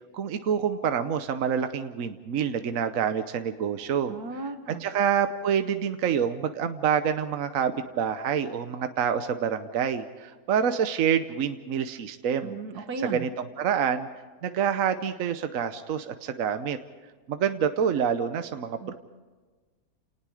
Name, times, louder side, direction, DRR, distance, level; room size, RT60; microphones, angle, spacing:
voice 1, 0.1-4.1 4.8-12.6 13.0-14.1 14.4-16.8 17.3-18.9, right 8 dB, 65° right, 9 dB, 1.2 m, -27 dB
voice 2, 4.1-4.8 12.4-13.2 18.8-18.9, right 4 dB, 80° right, 7 dB, 2.1 m, -35 dB
29.5 x 19.0 x 4.9 m, 1.4 s
omnidirectional pair, 1.6 m